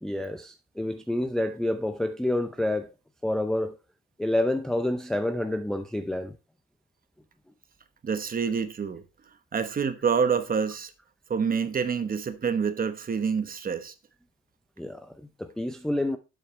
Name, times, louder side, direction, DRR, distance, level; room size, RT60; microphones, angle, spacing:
voice 1, 0.0-2.9 3.2-3.8 4.2-6.4 14.8-16.2, left 1 dB, ahead, 0.5 m, -28 dB
voice 2, 8.0-9.0 9.5-10.9 11.3-13.9, right 6 dB, 30° right, 1.0 m, -27 dB
11.5 x 7.9 x 3.2 m
cardioid pair, 160°, 31 cm